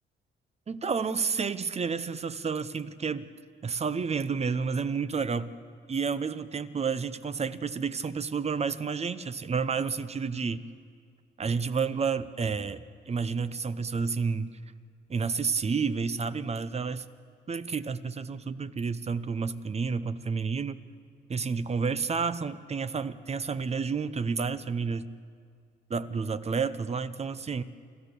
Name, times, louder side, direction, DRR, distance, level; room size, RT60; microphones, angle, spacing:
voice 1, 0.7-3.3 3.6-5.5 5.9-10.6 11.4-14.5 15.1-17.0 17.5-20.8 21.3-25.1 25.9-27.6, right 5 dB, 30° right, 14 dB, 0.8 m, -30 dB
28.0 x 13.5 x 6.9 m, 2.1 s
cardioid pair, 90°, 20 cm